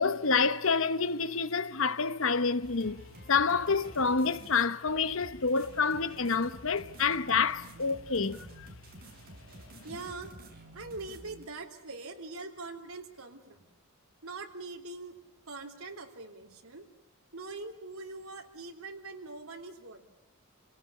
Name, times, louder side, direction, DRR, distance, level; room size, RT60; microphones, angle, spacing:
voice 1, 0.0-8.5, left 5 dB, 65° left, 1.0 m, -28 dB
sound 1, 2.6-11.4, right 1 dB, 45° right, 5.8 m, -50 dB
voice 2, 9.8-10.3 10.7-13.7 14.2-15.1 15.5-16.9 17.3-20.1, right 3 dB, 85° right, 3.4 m, -43 dB
27.5 x 17.5 x 9.9 m
head